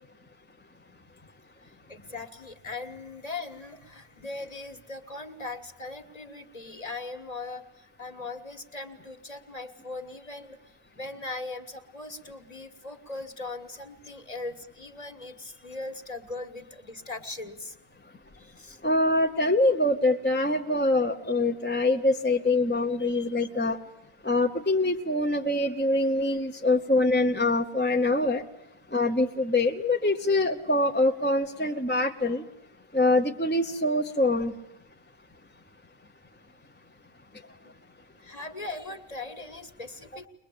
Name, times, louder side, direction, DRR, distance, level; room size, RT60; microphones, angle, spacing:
voice 1, 1.6-17.8 18.3-18.8 23.0-23.3 37.6-37.7 38.2-40.3, left 3 dB, 40° left, 1.7 m, -40 dB
voice 2, 18.8-23.8 24.2-28.4 28.9-32.4 32.9-34.5, left 2 dB, 10° left, 0.8 m, -24 dB
22.0 x 22.0 x 8.5 m
omnidirectional pair, 1.0 m